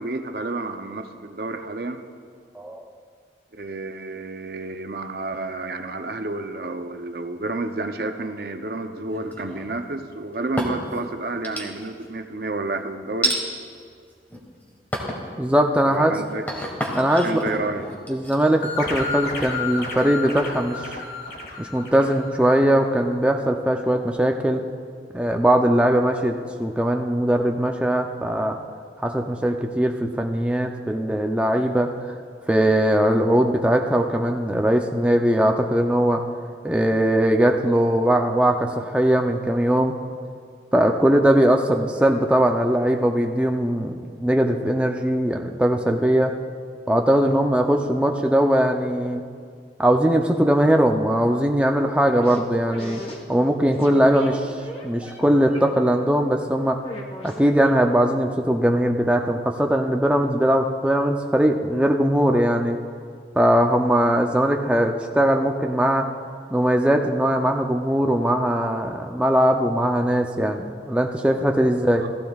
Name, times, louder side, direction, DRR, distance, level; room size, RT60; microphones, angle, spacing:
voice 1, 0.0-2.0 3.5-13.4 15.9-16.4 17.2-17.9 71.7-72.1, right 2 dB, 60° right, 7 dB, 0.6 m, -30 dB
sound 1, 9.1-9.8 10.3-11.0 11.4-12.1 13.2-13.4 14.1-14.5 14.9-15.3 15.7-19.4, equal, 10° left, 1.4 m, -30 dB
voice 2, 15.4-16.1 16.9-17.4 18.1-20.8 21.6-24.6 25.1-28.6 29.0-31.9 32.5-36.2 36.6-39.9 40.7-46.3 46.9-49.2 49.8-53.0 53.3-54.5 54.8-56.8 57.2-62.8 63.3-66.1 66.5-72.0, right 1 dB, 5° right, 2 dB, 0.4 m, -20 dB
sound 2, 18.6-22.9, left 4 dB, 60° left, 1.7 m, -32 dB
sound 3, 52.1-53.3 53.6-55.2 55.5-56.3 56.8-57.9, equal, 30° left, 1.1 m, -37 dB
15.5 x 14.5 x 2.4 m, 2.1 s
head